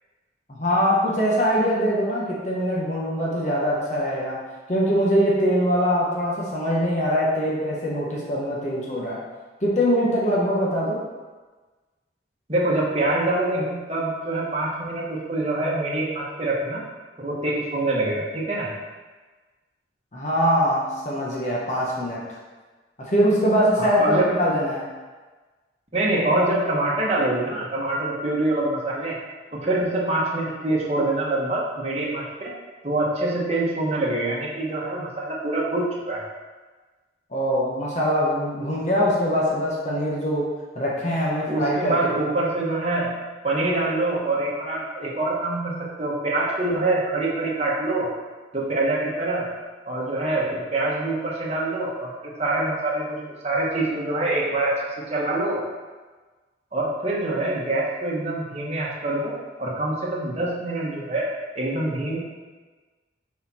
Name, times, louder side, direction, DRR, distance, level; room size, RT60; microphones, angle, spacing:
voice 1, 0.6-4.4 4.7-9.2 9.6-11.0 20.1-22.2 23.0-24.9 37.3-42.1, equal, 40° left, -5 dB, 1.1 m, -23 dB
voice 2, 12.5-16.8 17.2-18.7 23.8-24.3 25.9-29.2 29.5-32.5 32.8-36.3 41.5-43.1 43.4-48.1 48.5-49.5 49.9-52.1 52.4-54.8 55.1-55.6 56.7-59.3 59.6-61.3 61.5-62.2, right 2 dB, 35° right, -4 dB, 1.3 m, -25 dB
6.7 x 4.2 x 4.3 m, 1.3 s
head